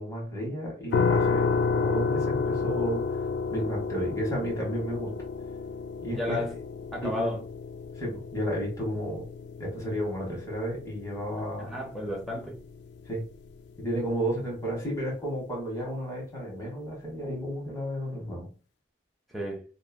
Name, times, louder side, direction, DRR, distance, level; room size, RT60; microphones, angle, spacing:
voice 1, 0.0-3.2 3.5-5.1 6.0-6.4 7.0-7.3 8.0-9.2 9.6-11.7 13.1-13.2 13.8-18.5, equal, 20° left, -3 dB, 1.0 m, -32 dB
sound 1, 0.9-13.8, left 5 dB, 75° left, 0.3 m, -31 dB
voice 2, 6.1-6.5 6.9-7.4 11.6-12.6 19.3-19.6, left 1 dB, ahead, -2 dB, 0.6 m, -32 dB
3.0 x 2.3 x 2.2 m, 0.36 s
head